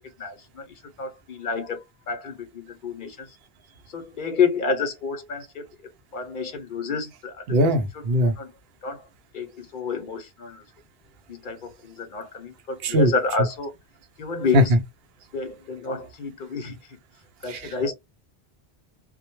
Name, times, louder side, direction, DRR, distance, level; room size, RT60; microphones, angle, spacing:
voice 1, 0.2-0.7 1.0-3.3 3.9-5.6 6.1-7.6 7.9-8.0 8.4-8.5 8.8-9.0 9.3-10.6 11.3-13.7 14.2-14.7 15.3-16.8 17.4-17.9, left 5 dB, 55° left, 0.7 m, -29 dB
voice 2, 7.5-8.3 12.8-13.1 14.5-14.6 17.5-17.9, equal, 70° right, 0.8 m, -20 dB
2.1 x 2.1 x 2.9 m
omnidirectional pair, 1.1 m